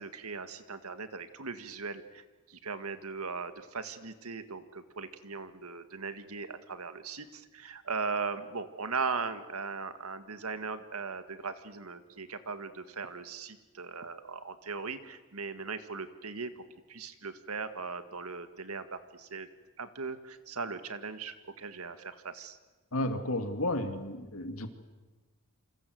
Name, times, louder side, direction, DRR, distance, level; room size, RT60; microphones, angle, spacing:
voice 1, 0.0-16.6 16.9-19.5 19.8-22.6, right 4 dB, 85° right, 10 dB, 1.8 m, -39 dB
voice 2, 22.9-24.7, left 1 dB, 75° left, 7 dB, 2.6 m, -32 dB
28.0 x 26.0 x 7.9 m, 1.2 s
head